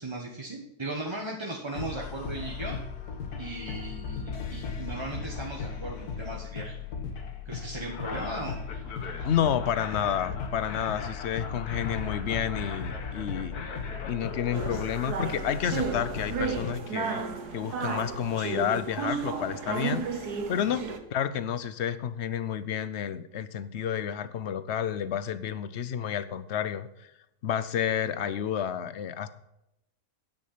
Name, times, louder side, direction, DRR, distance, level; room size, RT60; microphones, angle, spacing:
voice 1, 0.0-2.8 3.4-6.8 7.4-8.6 20.6-20.7, right 2 dB, 20° right, -1 dB, 1.3 m, -37 dB
sound 1, 1.7-16.7, left 5 dB, 75° left, 1.7 m, -36 dB
voice 2, 9.2-13.5 14.1-17.2 17.5-20.9 21.1-26.9 27.4-29.3, left 9 dB, 55° left, 14 dB, 0.9 m, -30 dB
sound 2, 14.5-21.0, right 5 dB, 80° right, 1.8 m, -33 dB
9.8 x 8.5 x 5.8 m, 0.86 s
omnidirectional pair, 1.7 m